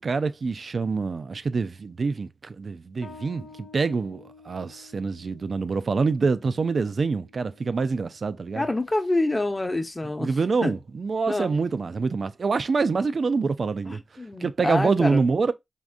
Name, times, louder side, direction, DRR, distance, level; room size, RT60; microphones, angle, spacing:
voice 1, 0.0-8.6 10.2-14.0 14.4-15.5, right 4 dB, 70° right, 0.3 m, -26 dB
Bass guitar, 3.0-10.2, left 4 dB, 85° left, 1.0 m, -52 dB
voice 2, 8.5-10.3 10.6-10.7 11.3-11.6 13.8-15.3, left 2 dB, 30° left, 0.8 m, -27 dB
3.6 x 2.6 x 2.4 m
cardioid pair, 60°, 0 cm